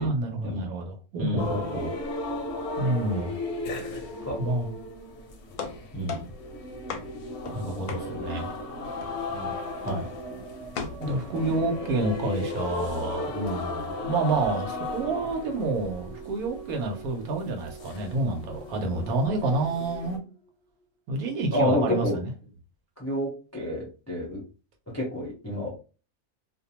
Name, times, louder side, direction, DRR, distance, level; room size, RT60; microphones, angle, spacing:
voice 1, 0.0-2.0 2.8-3.4 4.4-4.7 7.5-8.5 11.0-20.2 21.1-22.3, right 2 dB, 85° right, 3 dB, 1.2 m, -28 dB
voice 2, 1.2-1.7 4.2-4.3 5.9-6.3 8.1-8.2 9.3-9.5 9.8-10.1 21.5-22.2 23.0-24.4 24.9-25.7, left 1 dB, 20° left, -5 dB, 0.5 m, -29 dB
sound 1, 1.4-20.2, left 2 dB, 60° left, 0.8 m, -36 dB
sound 2, 5.5-8.7 9.0-9.5 9.9-10.2 10.8-11.0, left 5 dB, 85° left, 1.1 m, -37 dB
sound 3, 6.4-20.8, right 3 dB, 50° right, 1.1 m, -47 dB
2.6 x 2.2 x 2.8 m, 0.34 s
omnidirectional pair, 1.5 m